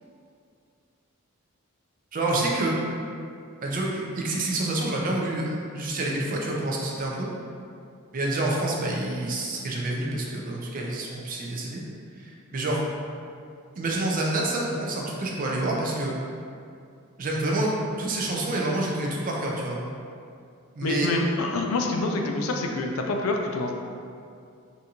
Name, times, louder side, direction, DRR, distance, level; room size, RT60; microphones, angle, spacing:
voice 1, 2.1-2.8 3.6-7.3 8.1-11.8 12.2-12.8 13.8-16.1 17.2-19.8 20.8-21.1, right 2 dB, 40° right, -2 dB, 0.4 m, -28 dB
voice 2, 20.8-23.7, left 2 dB, 70° left, 2 dB, 0.4 m, -26 dB
3.5 x 2.6 x 2.8 m, 2.4 s
head